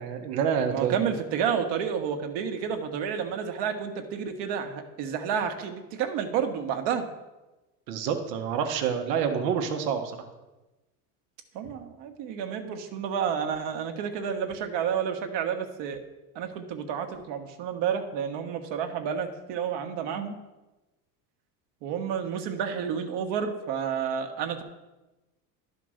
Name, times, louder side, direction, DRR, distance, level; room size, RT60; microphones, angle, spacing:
voice 1, 0.0-1.0 7.9-10.2, right 7 dB, 80° right, 6 dB, 1.3 m, -27 dB
voice 2, 0.7-7.1 11.5-16.0 16.3-20.3 21.8-24.6, right 7 dB, 60° right, 5 dB, 1.4 m, -30 dB
11.0 x 5.2 x 6.4 m, 1.1 s
supercardioid pair, 95°, 47 cm